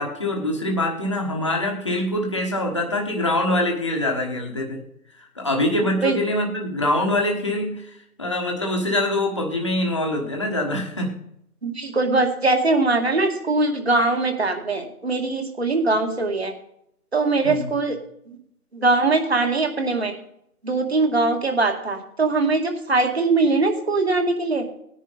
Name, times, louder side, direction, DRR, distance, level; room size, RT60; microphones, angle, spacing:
voice 1, 0.0-4.8 5.2-7.9 8.2-11.2 17.4-17.7, left 1 dB, 20° left, 1 dB, 1.3 m, -24 dB
voice 2, 11.6-16.5 17.1-18.0 18.7-20.1 20.6-24.7, right 3 dB, 40° right, 5 dB, 2.2 m, -21 dB
18.0 x 10.0 x 4.1 m, 0.75 s
figure-of-eight pair, 170°, 46 cm